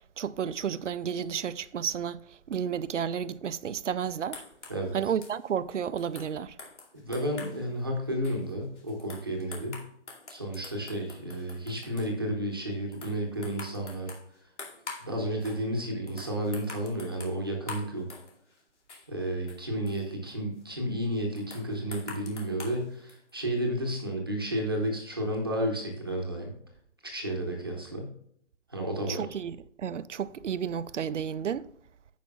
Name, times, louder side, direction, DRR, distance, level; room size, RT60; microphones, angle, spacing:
voice 1, 0.2-4.4 4.9-6.6 29.1-31.7, right 8 dB, 90° right, 0.6 m, -32 dB
sound 1, 4.0-7.6 8.1-12.2 12.7-15.1 15.4-15.6 16.1-18.6 18.9-20.8 21.4-23.4, left 3 dB, 80° left, 2.5 m, -46 dB
voice 2, 6.9-9.8 10.3-14.1 15.0-18.1 19.1-26.5 27.0-28.1 28.7-29.2, right 1 dB, 20° right, 0.9 m, -32 dB
15.0 x 5.1 x 2.4 m
hypercardioid pair, 180°, 35 cm